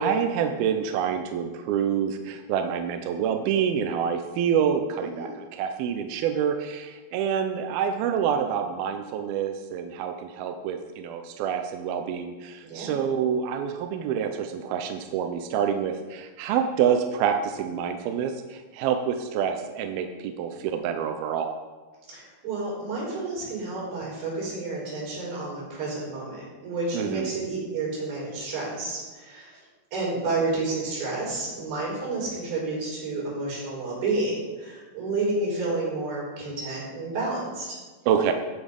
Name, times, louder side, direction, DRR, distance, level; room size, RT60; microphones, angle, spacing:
voice 1, 0.0-21.6 26.9-27.3 38.1-38.3, right 8 dB, 75° right, 6 dB, 2.3 m, -27 dB
voice 2, 5.0-5.3 12.6-13.0 22.1-29.6 29.9-37.8, right 3 dB, 60° right, -5 dB, 6.7 m, -30 dB
14.5 x 8.4 x 5.3 m, 1.3 s
omnidirectional pair, 5.0 m